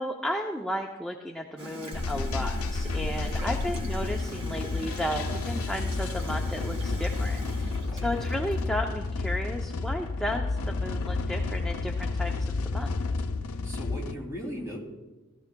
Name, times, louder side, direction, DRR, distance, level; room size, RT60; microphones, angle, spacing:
voice 1, 0.0-12.9, equal, 5° left, 1 dB, 0.5 m, -34 dB
Gurgling / Toilet flush, 1.6-8.7, left 1 dB, 65° right, 2.0 m, -42 dB
sound 1, 1.9-14.2, left 3 dB, 85° left, 0.6 m, -31 dB
voice 2, 3.2-3.6 7.7-8.1 13.6-14.8, equal, 15° right, -3 dB, 2.6 m, -38 dB
16.0 x 13.5 x 2.2 m, 1.2 s
head